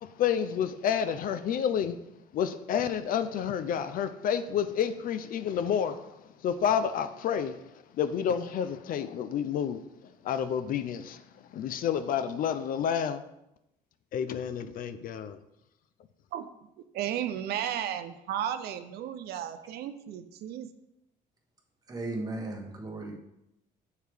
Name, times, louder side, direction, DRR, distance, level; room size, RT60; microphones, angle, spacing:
voice 1, 0.0-2.0 2.3-9.8 10.2-13.2 14.1-15.4, left 8 dB, 55° left, 0.4 m, -30 dB
voice 2, 16.9-20.7, right 10 dB, 70° right, 0.5 m, -34 dB
voice 3, 21.9-23.2, right 2 dB, 20° right, 1.1 m, -36 dB
6.5 x 4.5 x 3.4 m
cardioid pair, 110°, 17 cm